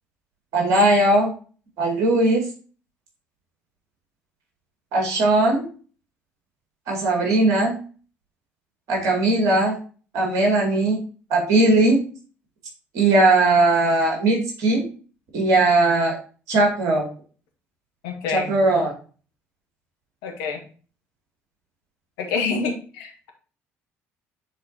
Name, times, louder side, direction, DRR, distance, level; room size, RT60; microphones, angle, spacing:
voice 1, 0.5-1.3 1.8-2.4 4.9-5.7 6.9-7.8 8.9-9.7 10.1-11.0 11.3-12.0 12.9-14.9 15.3-16.2 16.5-17.1 18.3-18.9, right 2 dB, 60° right, 0 dB, 2.4 m, -19 dB
voice 2, 18.0-18.5 20.2-20.6 22.2-23.3, left 5 dB, 70° left, 3 dB, 1.2 m, -27 dB
9.1 x 4.1 x 2.8 m, 0.38 s
figure-of-eight pair, 50°, 7 cm